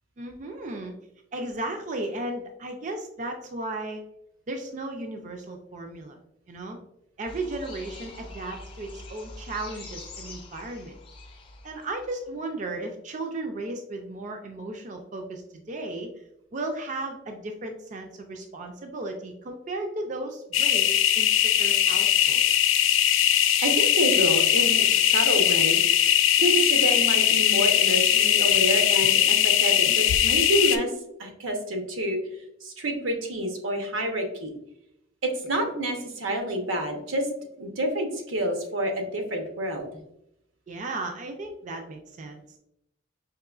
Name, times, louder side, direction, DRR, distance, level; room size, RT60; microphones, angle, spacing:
voice 1, 0.2-0.9 1.3-4.0 4.5-6.2 6.5-6.8 7.2-10.9 11.6-16.1 16.5-22.5 40.7-42.6, right 2 dB, 40° right, 3 dB, 0.4 m, -35 dB
sound 1, 7.3-12.4, left 2 dB, 25° left, 0.5 m, -44 dB
sound 2, 20.5-30.8, left 10 dB, 85° left, 0.3 m, -20 dB
voice 2, 23.6-25.8 26.4-30.9 31.2-32.2 32.6-34.5 35.2-37.3 37.6-39.9, right 1 dB, 90° right, 4 dB, 0.8 m, -28 dB
4.7 x 2.9 x 2.3 m, 0.80 s
head